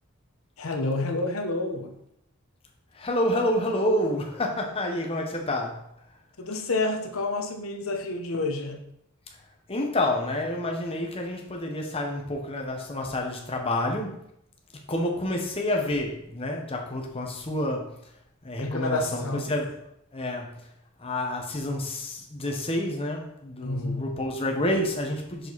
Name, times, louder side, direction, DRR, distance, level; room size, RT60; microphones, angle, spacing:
voice 1, 0.6-1.9 6.4-8.8 18.6-19.5 23.6-24.1, left 2 dB, 85° left, 1.0 m, -29 dB
voice 2, 2.9-5.8 9.7-14.1 14.9-17.9 18.4-19.8 20.1-20.5 21.0-25.5, left 1 dB, 25° left, 1.0 m, -28 dB
6.3 x 5.0 x 4.1 m
head